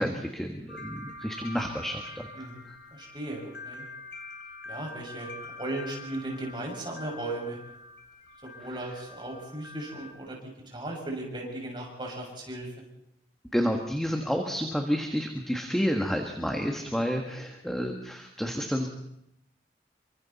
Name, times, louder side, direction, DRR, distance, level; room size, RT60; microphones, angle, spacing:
voice 1, 0.0-2.3 13.5-18.9, equal, 5° left, 3 dB, 1.5 m, -30 dB
sound 1, 0.7-10.1, left 2 dB, 75° left, 2.8 m, -45 dB
voice 2, 2.9-3.9 4.7-5.3 5.6-7.6 8.4-12.7, right 1 dB, 25° right, 0 dB, 6.2 m, -36 dB
28.0 x 24.5 x 4.2 m, 0.80 s
head